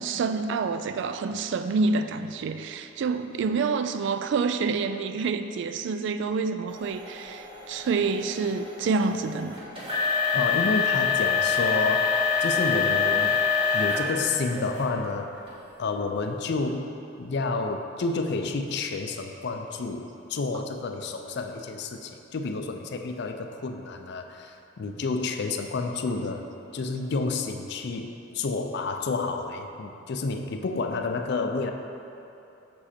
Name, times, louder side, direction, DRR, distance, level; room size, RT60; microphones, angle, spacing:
voice 1, 0.0-9.6, right 4 dB, 65° right, 9 dB, 0.3 m, -27 dB
sound 1, 6.7-14.1 14.5-14.9 15.5-15.6 16.2-16.3, left 6 dB, 30° right, 1.3 m, -26 dB
voice 2, 10.3-12.1 12.4-13.4 13.7-15.3 15.8-16.9 17.2-26.5 26.7-31.7, left 3 dB, 60° left, 5 dB, 0.4 m, -30 dB
6.3 x 5.0 x 4.2 m, 2.9 s
head